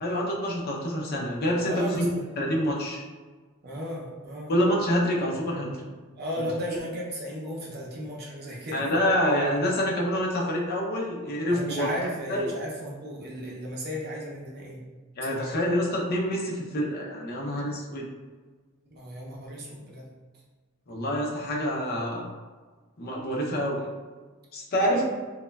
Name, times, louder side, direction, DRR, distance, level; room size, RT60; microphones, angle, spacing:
voice 1, 0.0-2.1 2.4-3.0 4.5-5.7 6.4-6.8 8.7-11.9 12.3-12.5 15.2-18.0 20.9-22.2 23.0-23.9 24.5-25.0, equal, 45° left, -2 dB, 0.5 m, -27 dB
voice 2, 1.6-2.4 3.6-4.5 6.2-8.9 11.5-14.8 15.3-15.5 18.9-20.1 24.8-25.0, equal, 50° right, -3 dB, 0.6 m, -35 dB
3.0 x 2.1 x 2.2 m, 1.4 s
head